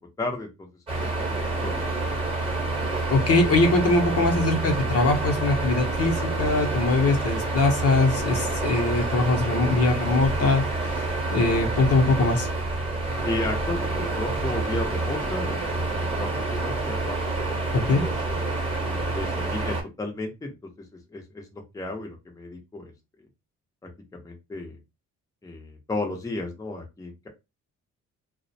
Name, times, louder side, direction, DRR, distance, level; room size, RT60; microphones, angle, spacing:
voice 1, 0.2-0.7 1.0-1.8 13.2-15.6 15.9-18.4 18.8-20.5 21.1-22.9 24.1-24.8 25.4-27.3, left 2 dB, 10° left, 1 dB, 0.6 m, -34 dB
sound 1, 0.9-19.8, right 2 dB, 20° right, 1.0 m, -28 dB
voice 2, 3.1-10.6 10.9-11.0 11.3-12.5 17.7-18.0, left 2 dB, 50° left, 3 dB, 0.7 m, -22 dB
2.3 x 2.0 x 2.7 m, 0.25 s
cardioid pair, 90°, 30 cm